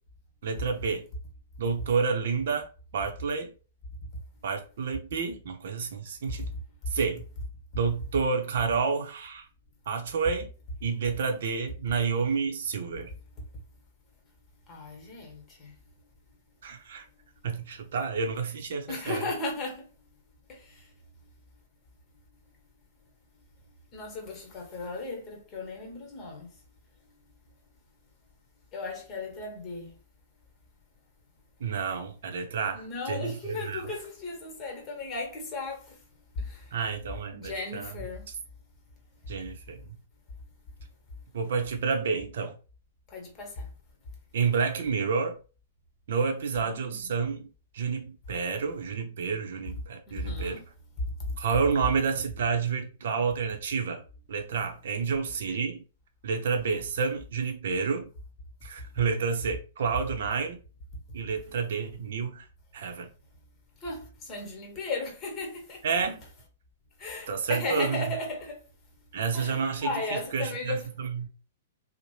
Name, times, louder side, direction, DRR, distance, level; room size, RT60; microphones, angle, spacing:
voice 1, 0.4-1.0 1.6-3.5 4.4-6.4 6.9-7.2 7.7-9.5 9.9-10.5 10.8-13.1 16.6-17.0 17.4-19.2 31.6-33.9 36.7-37.9 39.3-39.8 41.3-42.5 44.3-45.4 46.1-47.5 47.7-50.6 51.4-54.0 54.3-55.8 56.2-58.1 58.6-60.6 61.1-62.4 62.7-63.1 65.8-66.2 67.3-68.0 69.1-69.9 70.3-71.3, right 5 dB, 65° right, 0.6 m, -29 dB
voice 2, 14.7-15.7 18.9-19.9 20.5-20.9 23.9-26.5 28.7-30.0 32.7-36.0 36.3-36.8 37.3-38.3 43.1-43.7 46.6-47.1 50.1-50.7 51.2-51.3 63.8-66.0 67.0-68.6 69.3-70.9, left 3 dB, 30° left, 1.1 m, -36 dB
2.7 x 2.1 x 3.1 m
hypercardioid pair, 115°, 0 cm